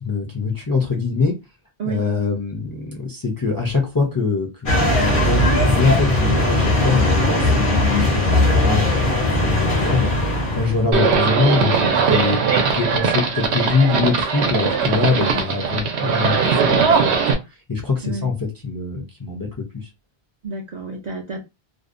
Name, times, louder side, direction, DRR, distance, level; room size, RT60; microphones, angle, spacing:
voice 1, 0.0-1.3 1.8-9.0 9.6-10.1 10.5-17.1 17.7-19.5 19.7-19.9, left 4 dB, 25° left, 0.5 m, -23 dB
sound 1, 4.7-10.9, left 1 dB, 55° left, 0.9 m, -18 dB
Livestock farm animals working animals, 10.9-17.3, right 5 dB, 85° right, 0.9 m, -19 dB
voice 2, 15.1-15.4 18.0-18.3 20.4-21.4, right 3 dB, 55° right, 0.5 m, -30 dB
2.6 x 2.0 x 2.5 m
omnidirectional pair, 1.1 m